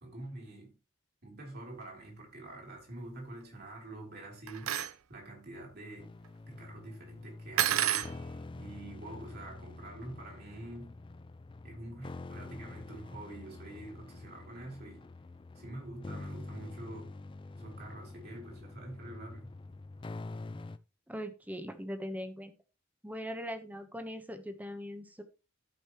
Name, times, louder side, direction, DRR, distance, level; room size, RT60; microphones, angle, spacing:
voice 1, 0.0-0.8 1.2-4.8 5.1-6.1 6.5-10.9 11.6-15.0 15.5-17.1 17.5-19.5, right 1 dB, 50° right, 3.3 m, -46 dB
silverware being placed onto counter, 4.5-4.9 7.6-8.1, right 10 dB, 85° right, 0.6 m, -29 dB
sound 1, 6.0-20.8, left 2 dB, 25° left, 0.4 m, -46 dB
voice 2, 21.1-22.5 23.0-25.2, equal, 10° right, 1.1 m, -40 dB
14.0 x 5.4 x 3.0 m
head